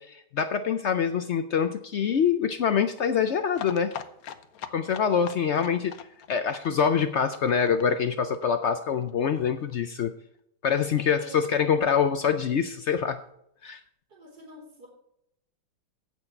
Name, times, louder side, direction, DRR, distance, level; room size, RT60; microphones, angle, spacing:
voice 1, 0.0-3.9 4.7-6.0 6.3-10.1 10.6-13.2 13.6-13.8, left 7 dB, 85° left, 9 dB, 0.6 m, -25 dB
sound 1, 3.5-9.1 9.4-9.5 9.7-9.8 10.0-10.1, left 9 dB, 60° left, 1.1 m, -41 dB
voice 2, 11.0-11.4 14.1-14.9, left 1 dB, 60° right, -2 dB, 3.8 m, -46 dB
16.0 x 6.4 x 4.4 m, 0.75 s
omnidirectional pair, 2.0 m